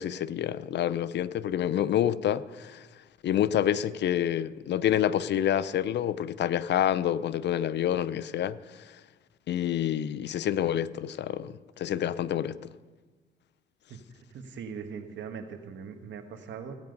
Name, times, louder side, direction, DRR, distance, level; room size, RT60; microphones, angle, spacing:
voice 1, 0.0-2.9 3.2-8.6 9.5-12.6, left 10 dB, 60° left, 0.5 m, -28 dB
voice 2, 14.3-16.8, right 6 dB, 65° right, 1.5 m, -40 dB
16.5 x 9.2 x 5.3 m
cardioid pair, 90°, 20 cm